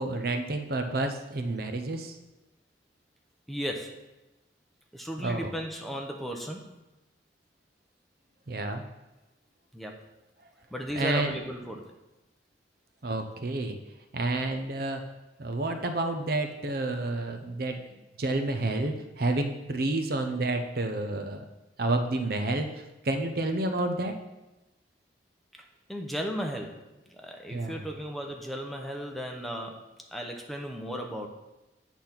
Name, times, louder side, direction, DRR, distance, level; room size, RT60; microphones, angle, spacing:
voice 1, 0.0-2.2 5.2-5.5 8.5-8.8 11.0-11.3 13.0-13.8 14.1-15.0 15.4-21.4 21.8-22.7 23.0-24.1 27.5-27.8, right 2 dB, 55° right, 6 dB, 0.7 m, -30 dB
voice 2, 3.5-4.0 4.9-6.7 9.7-10.0 10.7-11.9 25.9-26.8 27.1-29.8 30.1-31.3, equal, ahead, 1 dB, 0.8 m, -35 dB
8.6 x 4.1 x 5.9 m, 1.0 s
head